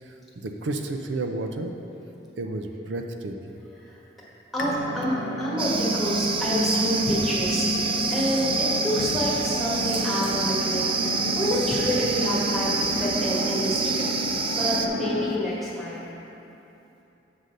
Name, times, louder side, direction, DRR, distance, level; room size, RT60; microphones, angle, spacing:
voice 1, 0.0-1.7 2.4-3.6, right 2 dB, 85° right, 4 dB, 0.5 m, -32 dB
voice 2, 4.5-16.1, equal, ahead, -7 dB, 1.5 m, -28 dB
sound 1, 4.6-15.5, left 1 dB, 75° left, 0.7 m, -30 dB
sound 2, 5.6-14.9, right 4 dB, 30° right, 0.3 m, -28 dB
8.0 x 3.9 x 6.4 m, 2.9 s
head